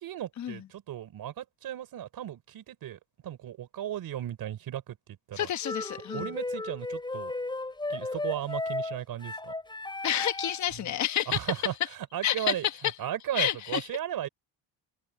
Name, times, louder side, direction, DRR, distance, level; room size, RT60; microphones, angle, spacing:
voice 1, 0.0-5.5 6.1-7.3 7.9-9.5 11.3-11.7 12.1-12.6 13.0-14.3, right 11 dB, 60° right, 4.7 m, -35 dB
voice 2, 5.3-6.3 10.0-11.5 12.2-12.7 13.3-13.9, left 11 dB, 45° left, 1.3 m, -29 dB
sound 1, 5.6-10.7, left 2 dB, 10° left, 7.6 m, -35 dB
cardioid pair, 145°, 41 cm